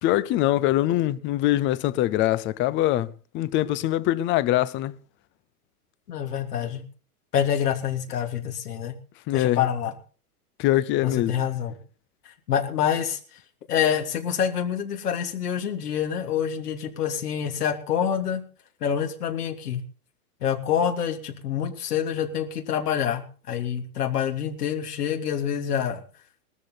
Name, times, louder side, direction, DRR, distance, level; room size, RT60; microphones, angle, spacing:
voice 1, 0.0-5.0 9.3-9.6 10.6-11.4, left 14 dB, 25° left, 0.6 m, -23 dB
voice 2, 6.1-6.8 7.3-8.9 9.3-9.9 11.0-11.7 12.2-13.2 13.7-18.4 18.8-19.8 20.4-26.0, left 8 dB, 80° left, 3.3 m, -26 dB
19.0 x 13.5 x 4.1 m
hypercardioid pair, 130°, 46 cm